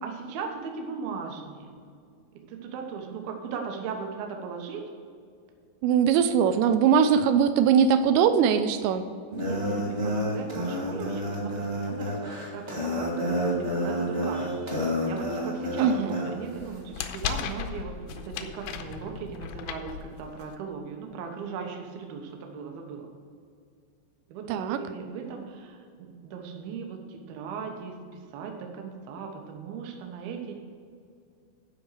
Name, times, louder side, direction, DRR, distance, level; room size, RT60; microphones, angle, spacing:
voice 1, 0.0-1.7 2.3-4.8 9.3-23.1 24.3-30.6, right 6 dB, 70° right, 3 dB, 2.6 m, -38 dB
voice 2, 5.8-9.0 15.8-16.2 24.5-24.8, right 7 dB, 85° right, 9 dB, 2.8 m, -21 dB
sound 1, 9.3-16.3, equal, 25° right, 1.2 m, -29 dB
sound 2, 16.6-20.5, left 8 dB, 80° left, 2.6 m, -36 dB
12.0 x 5.3 x 6.5 m, 2.2 s
omnidirectional pair, 5.1 m